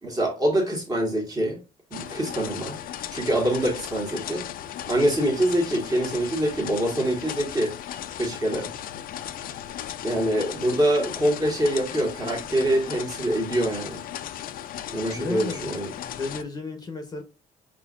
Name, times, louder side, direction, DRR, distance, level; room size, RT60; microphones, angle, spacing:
voice 1, 0.0-1.6 1.9-2.8 3.1-4.5 4.9-7.7 8.2-8.7 10.0-14.0 14.9-15.9, right 1 dB, 20° right, 1.4 m, -25 dB
sound 1, 1.9-16.4, left 11 dB, 60° left, 0.4 m, -36 dB
voice 2, 14.9-17.2, left 3 dB, 25° left, 0.8 m, -34 dB
4.1 x 3.7 x 2.4 m
cardioid pair, 110°, 17 cm